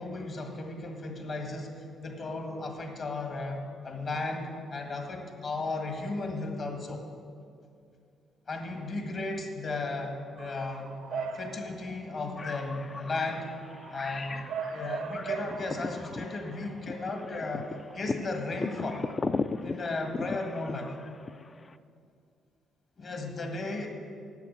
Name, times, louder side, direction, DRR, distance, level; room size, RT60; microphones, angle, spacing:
voice 1, 0.0-7.0 8.5-13.5 13.9-19.0 19.6-20.9 23.0-23.9, left 3 dB, 50° left, 3 dB, 1.7 m, -35 dB
Bark / Motor vehicle (road) / Siren, 10.4-19.1, right 6 dB, 85° right, 0.7 m, -41 dB
sound 1, 12.4-21.7, left 3 dB, 30° left, 0.4 m, -37 dB
8.3 x 7.4 x 7.9 m, 2.4 s
cardioid pair, 90°, 0 cm